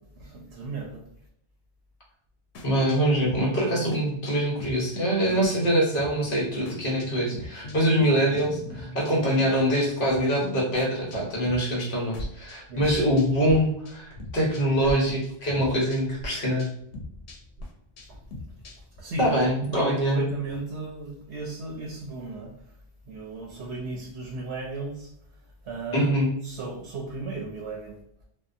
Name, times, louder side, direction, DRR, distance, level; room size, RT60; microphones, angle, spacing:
voice 1, 0.2-1.0 12.7-12.9 14.6-15.2 18.1-18.2 19.0-22.5 23.1-25.1 25.6-26.1 26.4-28.0, right 3 dB, 80° right, -1 dB, 0.8 m, -35 dB
sound 1, 2.5-13.6 13.8-14.9 15.2-19.0, left 1 dB, 90° left, 0.9 m, -40 dB
voice 2, 2.6-16.7 19.2-20.2 25.9-26.3, equal, 55° left, -3 dB, 1.0 m, -24 dB
2.7 x 2.1 x 2.4 m, 0.72 s
omnidirectional pair, 1.1 m